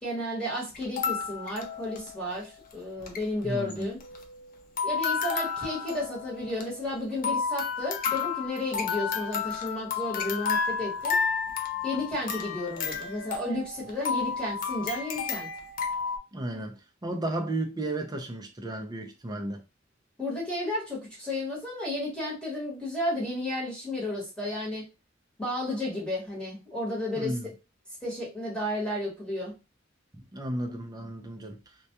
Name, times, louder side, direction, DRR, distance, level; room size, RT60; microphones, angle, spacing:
voice 1, 0.0-4.0 4.8-11.2 11.8-15.5 20.2-24.8 25.4-27.4 28.0-29.5, left 1 dB, 5° left, 1.1 m, -32 dB
sound 1, 0.7-2.4 2.7-2.8 3.0-3.2 3.7-4.5 4.8-16.2, left 6 dB, 45° left, 0.4 m, -32 dB
voice 2, 3.4-3.9 16.3-19.6 27.2-27.5 30.1-31.6, right 1 dB, 20° right, 0.4 m, -33 dB
2.2 x 2.2 x 2.8 m
head